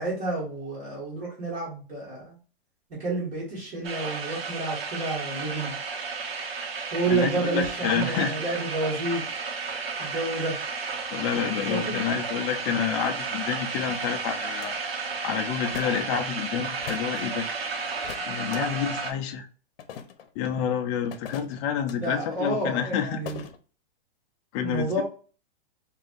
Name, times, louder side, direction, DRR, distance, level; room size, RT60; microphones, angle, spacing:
voice 1, 0.0-2.4 3.0-5.7 6.9-9.2 10.0-10.6 11.7-12.0 22.0-23.4 24.6-25.0, right 2 dB, 25° right, 1.8 m, -29 dB
sound 1, 3.8-19.1, right 4 dB, 75° right, 1.2 m, -33 dB
voice 2, 7.1-8.3 11.1-14.7 15.2-17.5 18.3-19.5 20.4-23.2 24.5-25.0, left 8 dB, 30° left, 0.4 m, -28 dB
sound 2, 14.6-14.7 15.7-16.1 16.8-17.2 18.0-18.6 19.8-20.3 21.1-22.0 23.3-23.6, left 8 dB, 70° left, 0.7 m, -40 dB
4.7 x 2.7 x 2.4 m
hypercardioid pair, 145°, 30 cm